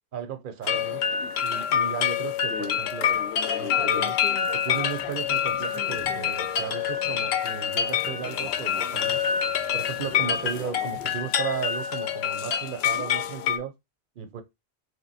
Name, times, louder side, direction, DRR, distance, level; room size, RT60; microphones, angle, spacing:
voice 1, 0.1-1.0 1.4-3.2 3.6-4.2 4.5-9.2 9.7-13.7 14.2-14.4, right 8 dB, 55° right, 0.7 m, -35 dB
sound 1, 0.6-13.6, left 8 dB, 70° left, 0.8 m, -26 dB
sound 2, 4.8-11.2, left 3 dB, 40° left, 0.7 m, -49 dB
3.2 x 2.9 x 4.0 m
omnidirectional pair, 1.1 m